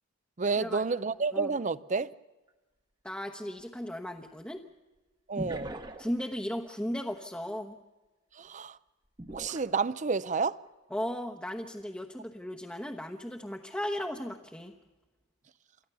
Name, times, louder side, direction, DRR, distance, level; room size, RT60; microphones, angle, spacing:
voice 1, 0.4-2.1 5.3-5.7 8.3-8.8 9.3-10.6, right 4 dB, 35° right, 0.6 m, -30 dB
sound 1, 2.5-2.6 5.4-6.3 9.2-10.3 10.9-11.1, right 1 dB, 20° right, 1.1 m, -41 dB
voice 2, 3.0-4.6 6.0-7.8 10.9-14.7, equal, 5° left, 1.0 m, -36 dB
28.5 x 14.0 x 6.9 m
head